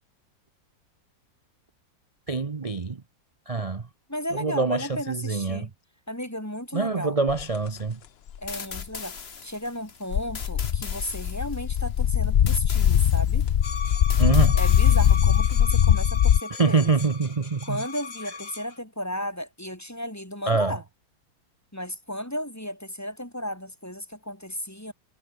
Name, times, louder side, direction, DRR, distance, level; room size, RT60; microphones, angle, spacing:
voice 1, 2.3-3.0 3.5-3.9 4.3-5.7 6.7-8.0 14.2-14.6 16.5-17.8 20.5-20.8, right 4 dB, 65° right, 0.3 m, -25 dB
voice 2, 4.1-5.7 6.1-7.2 8.4-13.5 14.5-16.9 17.6-20.8 21.7-24.9, equal, 10° left, 4.5 m, -34 dB
sound 1, 7.3-7.4 8.3-8.8 10.1-16.4, left 9 dB, 85° left, 0.5 m, -21 dB
sound 2, 8.5-15.6, left 5 dB, 35° left, 1.5 m, -41 dB
sound 3, 13.6-18.8, left 4 dB, 60° left, 3.7 m, -37 dB
omnidirectional pair, 2.0 m